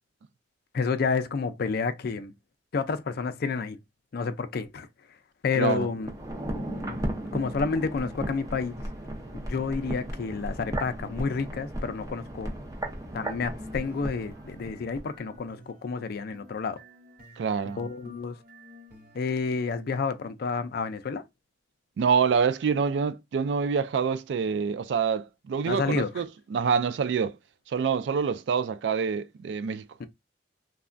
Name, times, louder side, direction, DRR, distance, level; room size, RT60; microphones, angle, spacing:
voice 1, 0.7-2.3 2.7-3.8 4.1-4.9 5.4-6.1 6.9-7.1 7.3-8.9 9.3-12.5 13.1-16.8 17.8-18.4 19.1-21.2 25.7-26.3 30.0-30.1, left 4 dB, 55° left, 0.4 m, -30 dB
voice 2, 5.6-5.9 17.4-17.8 22.0-27.3 27.7-29.9, right 6 dB, 70° right, 0.3 m, -26 dB
sound 1, 6.0-15.1 15.4-15.5, right 1 dB, 20° right, 0.6 m, -35 dB
sound 2, 13.0-19.5, left 1 dB, 55° right, 0.9 m, -51 dB
3.3 x 2.1 x 2.5 m
head